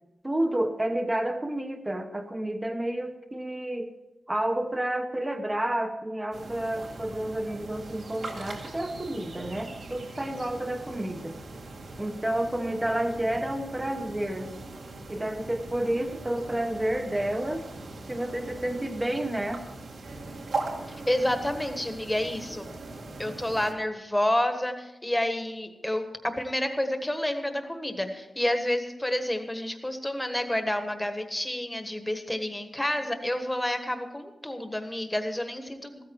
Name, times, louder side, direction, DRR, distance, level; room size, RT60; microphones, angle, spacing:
voice 1, 0.2-3.9 4.3-11.4 12.0-14.5 15.1-17.6 18.1-19.6, right 1 dB, 15° right, 5 dB, 1.0 m, -30 dB
sound 1, 6.3-23.7, right 2 dB, 85° right, 2.4 m, -40 dB
voice 2, 21.1-22.7 23.2-36.0, left 1 dB, 10° left, 6 dB, 1.4 m, -29 dB
15.0 x 13.5 x 4.6 m, 1.0 s
wide cardioid pair, 145°, 0 cm